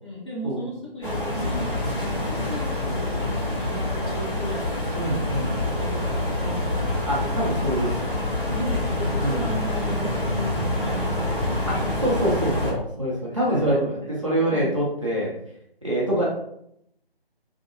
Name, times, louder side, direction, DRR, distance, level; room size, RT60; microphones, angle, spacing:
voice 1, 0.0-5.1 5.6-7.4 8.5-11.9 13.3-14.8, left 1 dB, 30° left, -8 dB, 0.7 m, -36 dB
sound 1, 1.0-12.7, left 1 dB, 55° left, 1.1 m, -26 dB
voice 2, 4.9-5.6 7.1-8.0 9.2-9.4 11.7-15.3 15.8-16.3, right 1 dB, 30° right, -7 dB, 0.5 m, -25 dB
2.7 x 2.0 x 2.5 m, 0.74 s
figure-of-eight pair, 160°, 31 cm